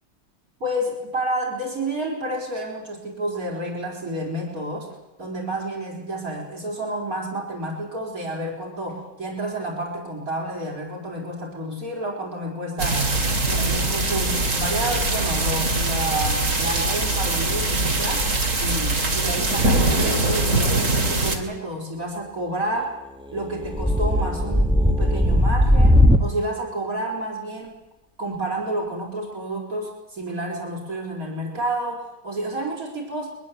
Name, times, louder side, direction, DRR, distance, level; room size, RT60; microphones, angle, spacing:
voice 1, 0.6-13.1 13.5-23.0 23.3-27.8 28.2-33.4, right 1 dB, 85° right, 0 dB, 5.4 m, -30 dB
sound 1, 12.8-21.4, right 2 dB, 65° right, 3.2 m, -22 dB
sound 2, 23.4-26.3, left 1 dB, 5° right, 1.4 m, -18 dB
23.0 x 21.0 x 8.4 m, 0.93 s
omnidirectional pair, 1.5 m